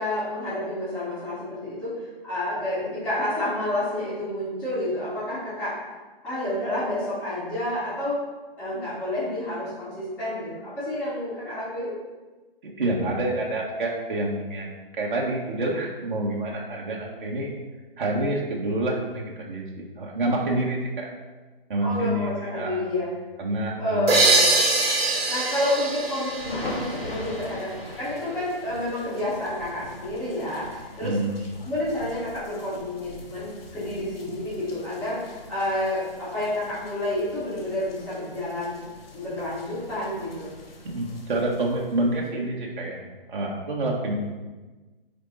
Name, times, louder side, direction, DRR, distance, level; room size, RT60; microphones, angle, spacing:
voice 1, 0.0-5.8 6.2-8.2 8.6-11.9 21.8-23.1 23.8-24.5 25.3-31.2 31.6-38.8 39.1-40.5, left 1 dB, 5° left, -16 dB, 2.6 m, -29 dB
voice 2, 12.6-17.5 18.0-21.1 21.7-22.9 23.4-24.1 31.0-31.4 40.8-43.0 43.3-44.2, right 1 dB, 55° right, -2 dB, 2.0 m, -27 dB
sound 1, 24.1-27.6, right 3 dB, 85° right, 1.7 m, -23 dB
sound 2, 25.3-42.3, left 2 dB, 80° left, 2.6 m, -42 dB
9.4 x 4.0 x 4.3 m, 1.2 s
hypercardioid pair, 160°, 29 cm